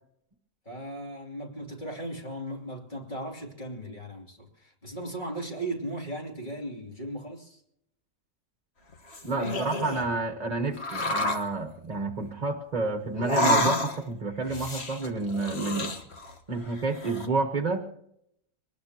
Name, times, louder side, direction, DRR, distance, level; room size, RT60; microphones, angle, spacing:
voice 1, 0.6-7.6, right 1 dB, 35° left, 3.0 m, -37 dB
sound 1, 8.9-10.1 10.8-11.5 13.1-14.1 14.4-16.4 16.7-17.3, left 1 dB, 50° left, 1.6 m, -29 dB
voice 2, 9.2-15.9 16.5-17.9, right 3 dB, 30° right, 1.2 m, -29 dB
24.5 x 19.0 x 2.9 m
omnidirectional pair, 1.4 m